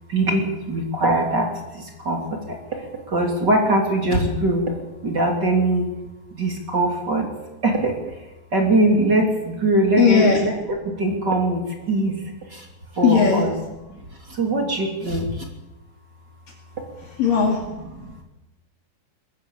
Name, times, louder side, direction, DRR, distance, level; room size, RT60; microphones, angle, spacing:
voice 1, 0.1-4.8 5.0-5.9 6.3-7.3 7.6-8.2 8.5-12.2 12.5-12.7 12.9-13.5 13.9-15.5 17.7-18.2, right 1 dB, 30° right, 1 dB, 3.0 m, -22 dB
voice 2, 10.0-10.4 13.0-13.4 17.2-17.6, left 6 dB, 55° left, 1 dB, 3.6 m, -17 dB
20.5 x 15.0 x 8.7 m, 1.0 s
omnidirectional pair, 5.0 m